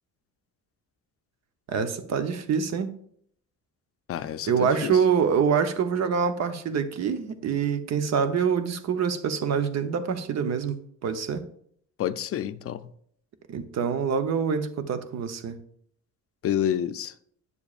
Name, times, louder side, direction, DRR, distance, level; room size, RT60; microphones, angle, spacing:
voice 1, 1.7-2.9 4.5-11.4 13.5-15.6, right 6 dB, 60° right, 0.8 m, -25 dB
voice 2, 4.1-5.0 12.0-12.8 16.4-17.1, left 10 dB, 50° left, 0.5 m, -28 dB
9.7 x 6.9 x 2.4 m
cardioid pair, 90°, 30 cm